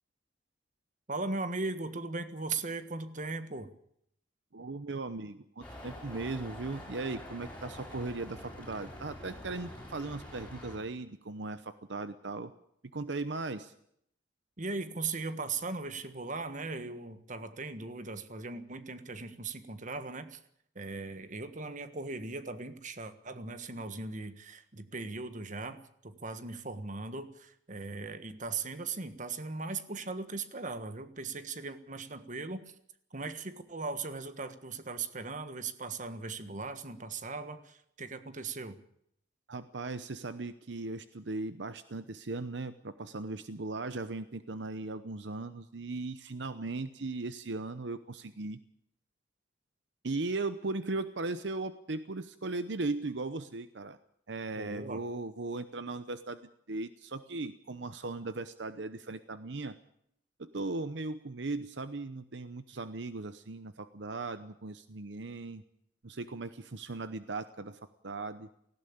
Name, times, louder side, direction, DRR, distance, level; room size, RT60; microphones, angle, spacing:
voice 1, 1.1-3.7 14.6-20.4 20.7-32.7 33.1-38.8 54.6-55.0, right 3 dB, 45° right, 11 dB, 1.5 m, -38 dB
voice 2, 4.5-12.5 12.9-13.7 39.5-48.6 50.0-54.0 54.3-56.4 56.7-59.7 60.4-65.6 66.0-68.5, right 3 dB, 70° right, 12 dB, 0.9 m, -38 dB
sound 1, 5.6-10.8, left 1 dB, 10° left, 7.4 m, -46 dB
18.0 x 16.5 x 8.7 m, 0.72 s
head